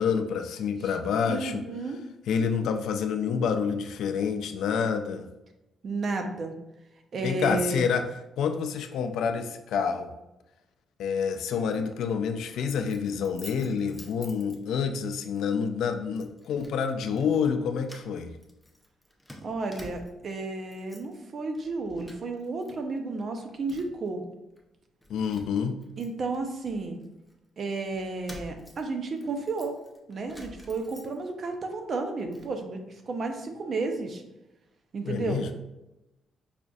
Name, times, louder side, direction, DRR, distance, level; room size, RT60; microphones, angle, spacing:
voice 1, 0.0-1.6 2.3-5.3 7.2-8.1 8.4-10.1 11.0-18.3 25.1-25.8 35.0-35.5, left 6 dB, 80° left, 7 dB, 0.3 m, -28 dB
voice 2, 1.2-2.0 5.8-6.5 7.1-7.9 19.4-24.2 26.0-27.0 27.6-29.7 30.1-34.2 34.9-35.4, right 3 dB, 50° right, 5 dB, 0.5 m, -32 dB
Keys jangling, 12.7-15.0 15.4-15.6 16.2-16.8 17.1-17.6 17.8-20.3 20.6-21.2 21.5-22.7 23.0-24.1 24.6-24.7 25.0-27.3 27.9-31.5 31.8-32.5, left 1 dB, 5° left, 0.6 m, -50 dB
5.0 x 2.4 x 2.3 m, 0.96 s
cardioid pair, 90°, 0 cm